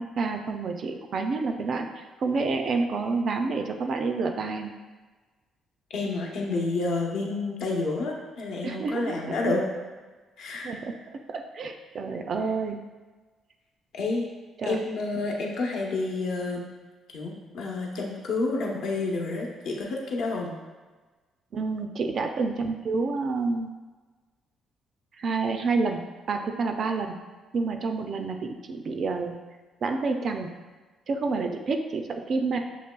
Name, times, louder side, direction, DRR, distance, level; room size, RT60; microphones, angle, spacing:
voice 1, 0.0-4.7 8.6-9.6 10.6-10.9 11.3-12.8 14.6-14.8 21.5-23.7 25.2-26.0 26.3-27.2 27.5-29.4 29.8-30.5 31.1-32.6, right 4 dB, 40° right, 5 dB, 0.3 m, -28 dB
voice 2, 5.9-9.7 10.4-10.7 13.9-14.3 14.6-16.7 17.1-20.5, left 3 dB, 65° left, 0 dB, 0.8 m, -29 dB
6.7 x 3.0 x 2.2 m, 1.3 s
cardioid pair, 180°, 0 cm